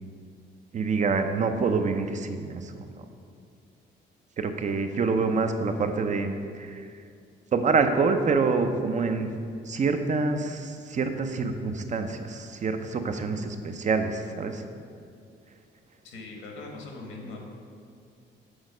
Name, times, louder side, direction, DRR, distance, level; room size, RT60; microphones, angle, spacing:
voice 1, 0.7-3.0 4.4-6.9 7.5-9.3 9.7-14.6, right 4 dB, 40° right, 7 dB, 0.5 m, -26 dB
voice 2, 16.0-17.4, left 3 dB, 90° left, 0 dB, 1.2 m, -40 dB
6.3 x 4.0 x 4.9 m, 2.3 s
cardioid pair, 90°, 20 cm